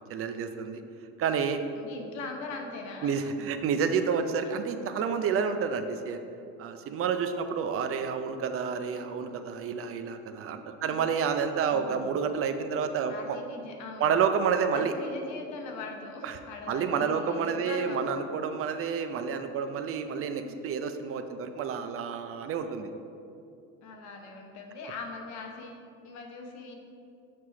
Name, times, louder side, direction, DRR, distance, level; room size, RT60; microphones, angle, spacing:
voice 1, 0.1-0.8 1.2-1.6 3.0-6.2 6.6-13.4 14.0-14.9 16.2-16.4 16.7-22.9, right 6 dB, 50° right, 8 dB, 0.5 m, -29 dB
voice 2, 1.8-3.2 4.5-4.6 10.8-11.0 11.7-12.1 13.1-14.1 14.7-18.2 20.4-20.6 23.8-26.8, left 3 dB, 70° left, 2 dB, 1.0 m, -41 dB
5.9 x 3.1 x 5.7 m, 2.6 s
supercardioid pair, 80°, 30 cm